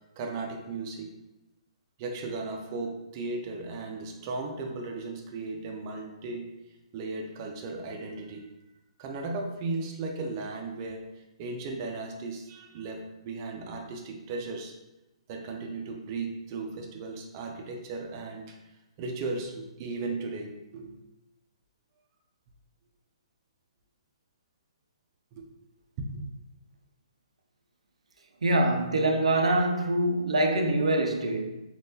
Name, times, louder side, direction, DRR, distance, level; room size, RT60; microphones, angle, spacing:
voice 1, 0.2-1.1 2.0-6.5 6.9-8.4 9.0-14.7 15.3-18.6 19.0-20.9 25.3-25.5 26.0-26.2, right 3 dB, 35° right, 2 dB, 0.4 m, -36 dB
voice 2, 28.4-31.5, right 1 dB, 85° right, 3 dB, 0.5 m, -24 dB
3.5 x 2.4 x 2.7 m, 0.99 s
hypercardioid pair, 145°, 3 cm